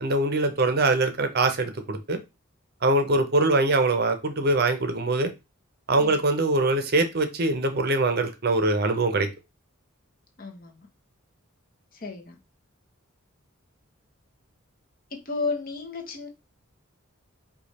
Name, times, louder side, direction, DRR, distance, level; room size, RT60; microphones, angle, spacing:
voice 1, 0.0-2.2 2.8-5.3 5.9-9.3, right 2 dB, 45° right, 0.7 m, -23 dB
voice 2, 10.4-10.9 11.9-12.4 15.2-16.3, left 4 dB, 40° left, 1.0 m, -33 dB
5.0 x 2.4 x 4.1 m
head